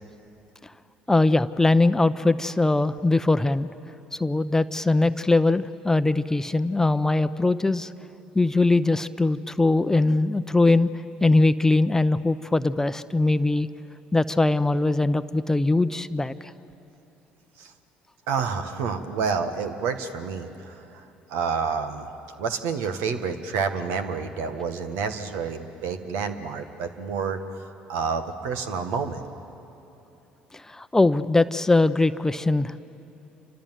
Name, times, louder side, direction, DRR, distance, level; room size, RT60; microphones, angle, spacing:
voice 1, 1.1-3.7 4.1-7.9 8.3-10.9 11.2-13.7 14.1-16.3 30.5-32.8, left 2 dB, 10° left, 12 dB, 0.8 m, -21 dB
voice 2, 18.3-22.1 22.4-27.4 27.9-29.2, right 5 dB, 70° right, 8 dB, 1.7 m, -29 dB
29.0 x 25.5 x 7.7 m, 2.9 s
hypercardioid pair, 60°, 4 cm